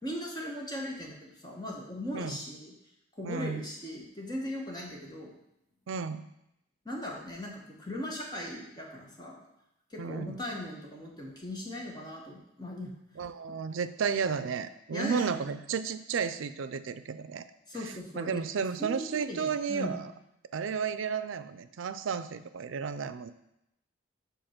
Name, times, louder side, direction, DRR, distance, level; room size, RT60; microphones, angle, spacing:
voice 1, 0.0-2.7 3.2-5.4 6.8-9.4 9.9-12.9 14.9-15.4 17.7-18.4 18.8-20.0, left 1 dB, 20° left, -2 dB, 1.2 m, -39 dB
voice 2, 3.2-3.7 5.9-6.3 10.0-10.4 13.2-17.5 17.8-20.1 20.5-23.3, right 6 dB, 85° right, 12 dB, 0.4 m, -33 dB
5.4 x 4.4 x 5.8 m, 0.83 s
head